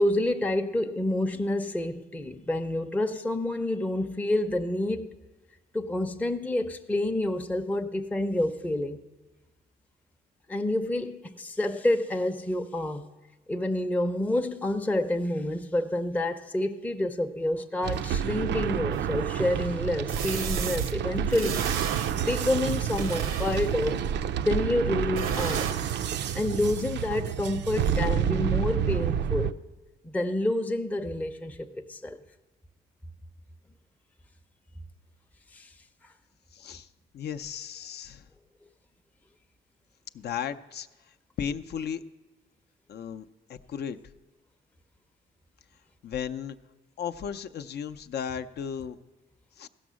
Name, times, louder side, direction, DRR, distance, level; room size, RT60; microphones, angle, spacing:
voice 1, 0.0-5.2 5.7-9.0 10.5-13.1 13.5-21.7 22.1-24.0 24.4-25.7 26.3-29.6 30.0-32.2 35.5-35.7, left 1 dB, 10° left, 0.5 m, -28 dB
sound 1, 17.8-29.5, right 9 dB, 60° right, 0.4 m, -29 dB
sound 2, 18.9-19.0 20.1-20.9 21.3-22.1 22.7-23.9 25.2-25.7, right 7 dB, 85° right, 0.8 m, -33 dB
voice 2, 36.5-36.9 37.1-38.3 40.1-40.9 41.4-42.0 42.9-44.0 46.0-46.6 47.0-49.0 49.6-49.7, left 8 dB, 55° left, 0.5 m, -35 dB
15.5 x 6.2 x 6.2 m
cardioid pair, 90°, 20 cm